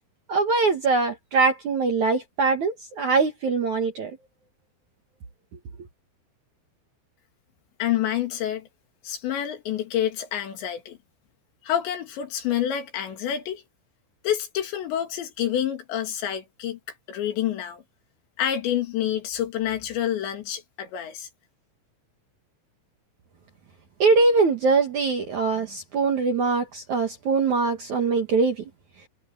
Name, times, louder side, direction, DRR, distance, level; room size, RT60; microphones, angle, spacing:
voice 1, 0.3-4.1 24.0-28.6, right 4 dB, 55° right, 2.3 m, -22 dB
voice 2, 7.8-8.7 9.0-11.0 11.6-13.6 14.2-16.8 17.1-17.8 18.4-21.3, left 10 dB, 70° left, 4.4 m, -28 dB
omnidirectional pair, 5.5 m